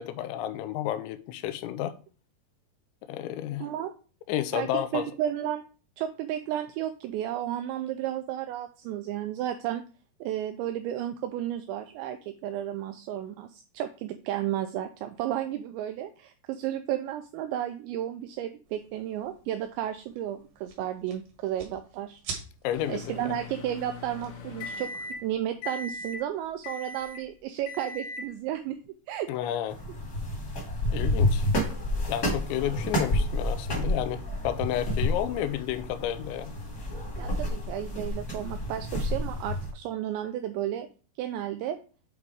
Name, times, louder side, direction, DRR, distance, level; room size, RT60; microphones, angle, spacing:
voice 1, 0.0-1.9 3.1-3.7 4.3-5.1 22.6-23.4 29.3-29.8 30.9-31.5 32.1-36.5, left 11 dB, 85° left, 2.8 m, -31 dB
voice 2, 3.6-3.9 4.5-5.6 6.0-9.8 10.2-22.2 22.9-28.8 29.1-29.3 37.2-40.9 41.2-41.8, right 11 dB, 85° right, 2.6 m, -33 dB
sound 1, 18.7-25.4, right 5 dB, 70° right, 3.7 m, -47 dB
Microwave oven, 22.7-25.3 25.6-26.2 26.6-27.2 27.7-28.3, left 2 dB, 65° left, 2.1 m, -39 dB
sound 2, 29.7-39.7, left 1 dB, 35° left, 1.6 m, -29 dB
8.5 x 3.6 x 4.7 m
omnidirectional pair, 5.4 m